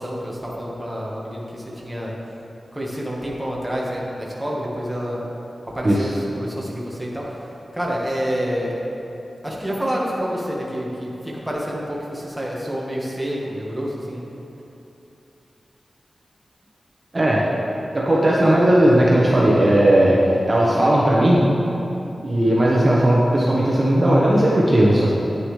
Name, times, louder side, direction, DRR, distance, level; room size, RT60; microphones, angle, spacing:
voice 1, 0.0-2.1 2.7-5.2 5.7-7.3 7.7-8.8 9.4-14.2, equal, 5° right, -4 dB, 1.5 m, -28 dB
voice 2, 17.1-17.4 17.9-21.5 22.2-25.1, right 1 dB, 30° right, -5 dB, 1.1 m, -16 dB
9.9 x 9.3 x 3.3 m, 2.9 s
wide cardioid pair, 105°, 0 cm